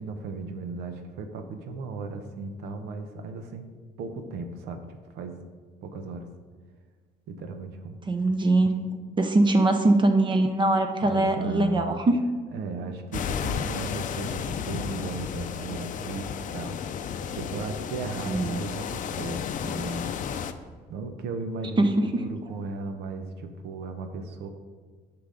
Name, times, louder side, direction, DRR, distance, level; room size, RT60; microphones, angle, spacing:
voice 1, 0.0-3.7 4.0-4.8 5.1-5.4 5.8-6.3 7.3-8.0 9.1-9.2 11.0-12.0 12.5-16.8 17.3-20.1 20.9-24.5, right 3 dB, 85° right, 6 dB, 0.9 m, -36 dB
voice 2, 8.1-8.7 9.2-12.2 18.3-18.6 21.8-22.2, right 2 dB, 30° right, 6 dB, 0.7 m, -22 dB
sound 1, 13.1-20.5, left 7 dB, 50° left, 0.5 m, -33 dB
9.9 x 6.0 x 3.9 m, 1.5 s
cardioid pair, 110°, 17 cm